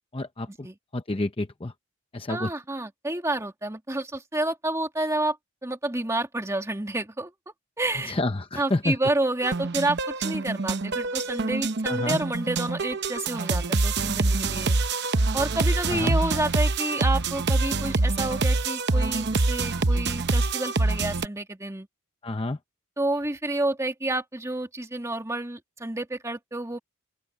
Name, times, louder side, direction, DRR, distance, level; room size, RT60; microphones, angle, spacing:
voice 1, 0.1-0.7 0.9-1.7 2.1-2.5 8.1-9.0 11.9-12.2 15.9-16.2 22.2-22.6, left 2 dB, 25° left, 0.7 m, -29 dB
voice 2, 2.3-5.4 5.6-7.3 7.8-8.1 8.6-14.8 15.3-21.9 23.0-26.8, right 2 dB, 15° right, 2.0 m, -29 dB
sound 1, 9.4-21.3, right 3 dB, 50° right, 0.9 m, -25 dB
open air
head